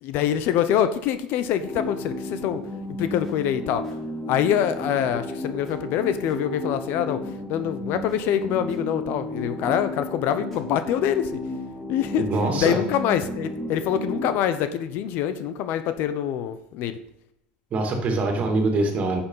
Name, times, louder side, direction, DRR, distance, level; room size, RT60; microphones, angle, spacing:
voice 1, 0.0-2.6 3.0-3.9 4.3-11.4 11.9-12.3 12.5-17.0, left 9 dB, 55° left, 11 dB, 0.8 m, -25 dB
sound 1, 1.6-14.3, left 1 dB, 5° left, 4.0 m, -33 dB
voice 2, 12.2-12.8 17.7-19.2, right 2 dB, 35° right, 3 dB, 2.5 m, -23 dB
10.5 x 7.2 x 5.7 m, 0.80 s
supercardioid pair, 130°, 4 cm